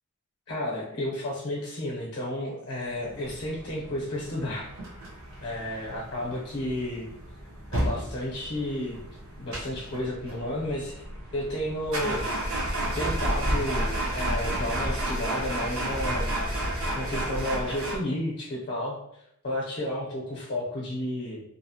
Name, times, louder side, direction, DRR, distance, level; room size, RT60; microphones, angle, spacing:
voice 1, 0.5-4.7 5.4-7.1 7.7-9.0 9.4-10.9 11.3-12.3 13.0-16.3 17.0-19.0 19.4-21.4, left 1 dB, 50° left, -3 dB, 0.6 m, -32 dB
sound 1, 3.0-18.0, right 1 dB, 65° right, 0.7 m, -32 dB
2.7 x 2.0 x 2.7 m, 0.76 s
head